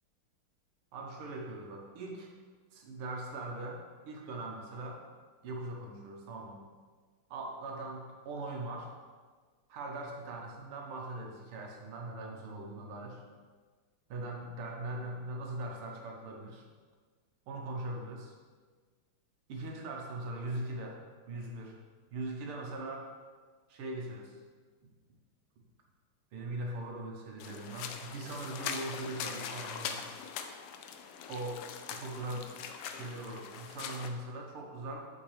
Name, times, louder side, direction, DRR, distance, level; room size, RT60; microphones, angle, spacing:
voice 1, 0.9-2.3 2.7-5.0 5.4-6.6 7.3-8.9 9.7-13.2 14.1-16.6 17.5-18.3 19.5-21.0 21.3-21.8 22.1-23.1 23.7-24.3 24.8-24.9 26.3-30.1 31.3-31.6 31.9-32.6 32.9-35.1, right 2 dB, 80° right, 0 dB, 1.9 m, -40 dB
sound 1, 27.4-34.1, left 7 dB, 90° left, 1.5 m, -42 dB
8.8 x 5.1 x 3.3 m, 1.5 s
omnidirectional pair, 2.4 m